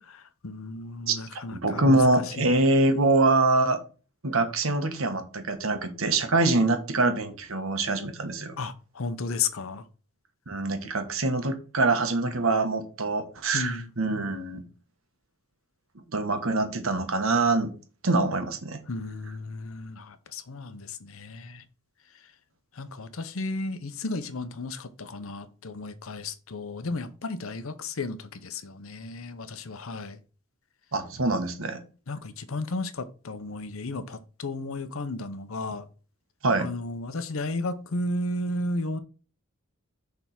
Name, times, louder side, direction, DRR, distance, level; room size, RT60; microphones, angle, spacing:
voice 1, 0.0-2.0 2.4-2.5 8.6-9.8 13.5-13.9 18.9-21.6 22.8-30.2 32.1-35.9 36.6-39.0, left 2 dB, 75° left, 0.8 m, -34 dB
voice 2, 1.1-3.8 4.2-8.5 10.5-14.6 16.1-17.7 18.0-18.8 30.9-31.8 36.4-36.7, right 2 dB, 70° right, 1.2 m, -24 dB
6.7 x 3.5 x 5.8 m
head